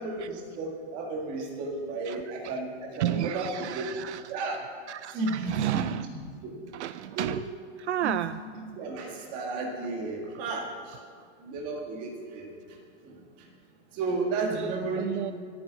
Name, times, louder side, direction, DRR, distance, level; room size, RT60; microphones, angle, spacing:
voice 1, 0.0-2.7 3.0-3.9 4.3-4.6 5.1-6.0 6.4-6.5 7.2-7.3 8.0-8.2 8.5-10.7 11.4-12.5 13.0-13.1 13.9-15.1, right 3 dB, 20° right, 0 dB, 1.8 m, -33 dB
voice 2, 2.0-2.5 3.0-4.2 4.9-6.1 6.7-7.4 7.8-8.4 11.2-11.3 14.5-14.7 15.0-15.3, right 12 dB, 70° right, 13 dB, 0.5 m, -32 dB
25.0 x 9.4 x 4.0 m, 2.1 s
supercardioid pair, 175°, 35 cm